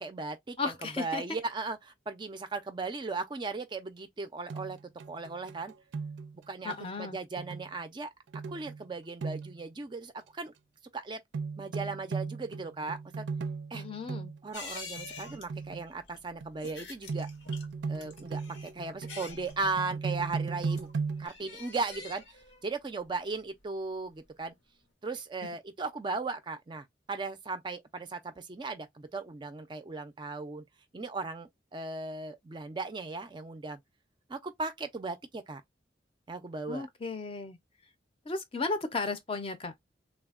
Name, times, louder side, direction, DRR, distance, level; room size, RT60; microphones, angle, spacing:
voice 1, 0.0-4.8 5.1-5.7 6.5-8.1 8.5-10.5 10.9-11.2 11.6-13.3 13.7-13.8 14.4-17.3 17.9-20.9 21.2-24.5 25.0-30.6 30.9-33.8 34.3-35.6 36.3-36.9, right 3 dB, 25° right, 0.4 m, -37 dB
voice 2, 0.6-1.4 6.6-7.2 13.7-14.3 25.4-25.5 36.7-37.6 38.3-39.7, left 3 dB, 30° left, 0.5 m, -35 dB
sound 1, 4.5-6.4 6.7-6.8 7.4-7.7 8.3-8.8 9.2-9.6 11.3-14.4 15.0-15.8 16.1-16.7 17.1-21.3, right 4 dB, 90° right, 0.4 m, -37 dB
sound 2, 14.5-24.5 24.8-24.9, left 4 dB, 90° left, 0.9 m, -48 dB
3.3 x 2.1 x 2.4 m
head